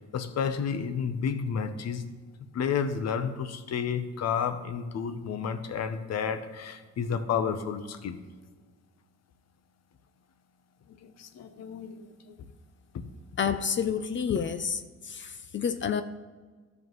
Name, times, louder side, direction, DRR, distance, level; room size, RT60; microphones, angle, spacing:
voice 1, 0.0-2.0 2.5-8.2 11.0-12.4 12.9-13.0, left 7 dB, 60° left, 0.8 m, -31 dB
voice 2, 13.4-16.0, left 7 dB, 40° left, 0.5 m, -29 dB
13.5 x 5.3 x 3.1 m
cardioid pair, 90°, 30 cm